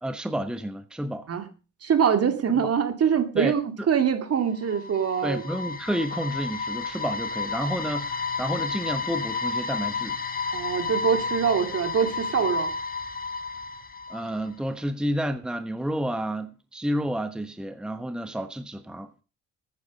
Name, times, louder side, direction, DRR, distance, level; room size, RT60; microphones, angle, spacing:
voice 1, 0.0-1.3 2.6-2.7 3.4-3.5 5.2-10.2 14.1-19.2, equal, 5° right, 1.1 m, -30 dB
voice 2, 1.8-5.4 10.5-12.7, right 7 dB, 55° right, 2.4 m, -24 dB
sound 1, 4.4-14.5, left 4 dB, 30° left, 1.3 m, -31 dB
13.5 x 9.6 x 5.2 m
cardioid pair, 90°, 30 cm